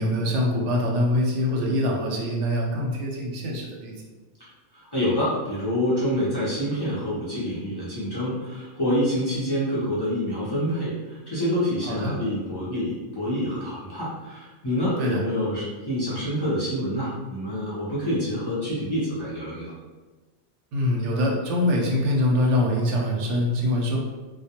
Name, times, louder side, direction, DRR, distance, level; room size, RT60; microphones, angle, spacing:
voice 1, 0.0-3.9 11.8-12.2 15.0-15.2 20.7-24.0, left 1 dB, 85° right, -1 dB, 0.9 m, -24 dB
voice 2, 4.4-19.7, equal, 30° left, -10 dB, 0.5 m, -27 dB
2.2 x 2.1 x 2.8 m, 1.2 s
omnidirectional pair, 1.2 m